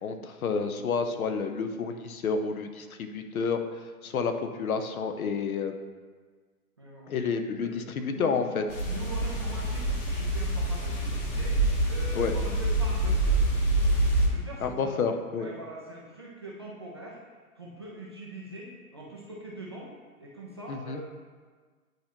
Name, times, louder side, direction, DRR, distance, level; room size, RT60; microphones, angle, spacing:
voice 1, 0.0-3.6 4.0-4.3 4.6-5.8 7.1-8.6 12.1-12.3 14.6-15.5 20.7-21.0, left 5 dB, 70° left, 7 dB, 0.8 m, -29 dB
voice 2, 6.8-7.2 7.6-8.4 8.8-13.5 14.2-15.0 15.3-17.2 17.6-19.9 20.2-21.0, right 2 dB, 20° right, -5 dB, 0.3 m, -43 dB
sound 1, 8.7-14.3, right 1 dB, 25° left, 1.1 m, -26 dB
9.2 x 4.5 x 2.9 m, 1.5 s
hypercardioid pair, 130°, 45 cm